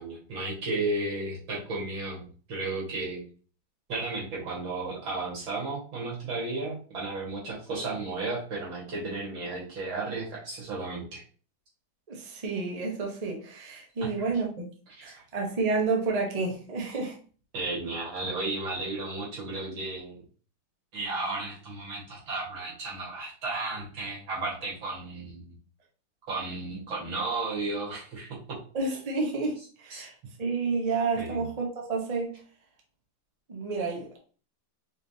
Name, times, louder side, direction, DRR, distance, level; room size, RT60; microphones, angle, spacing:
voice 1, 0.0-3.2 3.9-11.2 14.9-15.1 17.5-20.2 20.9-25.5 26.3-28.6 29.9-30.1 31.2-31.5, right 3 dB, 75° right, -5 dB, 2.6 m, -34 dB
voice 2, 12.1-14.6 15.0-17.2 28.7-32.4 33.5-34.2, right 4 dB, 40° right, 0 dB, 0.5 m, -30 dB
4.8 x 3.2 x 2.8 m, 0.40 s
omnidirectional pair, 2.2 m